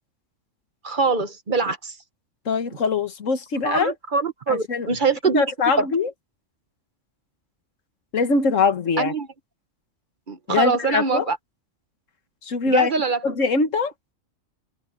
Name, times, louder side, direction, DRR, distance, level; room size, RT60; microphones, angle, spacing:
voice 1, 0.8-2.0 3.6-5.4 5.8-5.9 9.0-9.3 10.3-11.4 12.7-13.2, right 4 dB, 40° right, 1.2 m, -23 dB
voice 2, 2.4-3.9 4.5-4.9 5.2-6.1 8.1-9.1 10.5-11.3 12.4-12.9 13.2-13.9, left 4 dB, 85° left, 1.8 m, -22 dB
omnidirectional pair, 1.3 m